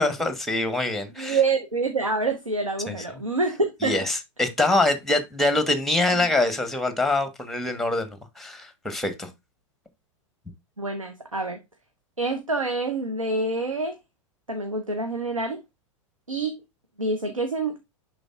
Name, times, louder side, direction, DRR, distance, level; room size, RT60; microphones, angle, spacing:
voice 1, 0.0-1.4 2.9-3.0 3.8-8.1 8.4-9.3, left 2 dB, ahead, 1.2 m, -24 dB
voice 2, 1.2-4.0 6.1-6.2 10.8-11.6 12.2-14.0 14.5-15.6 16.3-16.5 17.0-17.8, right 3 dB, 90° right, 1.0 m, -26 dB
10.5 x 3.9 x 2.4 m
figure-of-eight pair, 95°, 17 cm